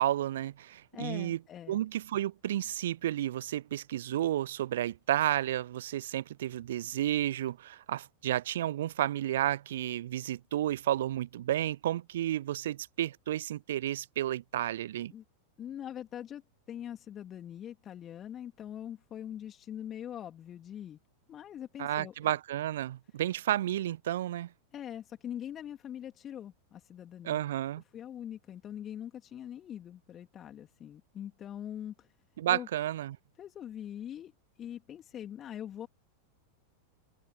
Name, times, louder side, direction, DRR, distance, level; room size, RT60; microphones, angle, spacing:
voice 1, 0.0-1.4 1.7-15.1 21.8-24.5 27.2-27.8 32.4-33.2, right 12 dB, 60° right, 0.3 m, -31 dB
voice 2, 0.9-1.8 15.1-15.2 15.6-16.4 16.7-21.0 21.3-22.3 24.7-27.4 27.9-32.1 32.5-32.7 33.4-34.3 34.6-35.9, left 10 dB, 25° left, 3.1 m, -43 dB
figure-of-eight pair, 90°, 0 cm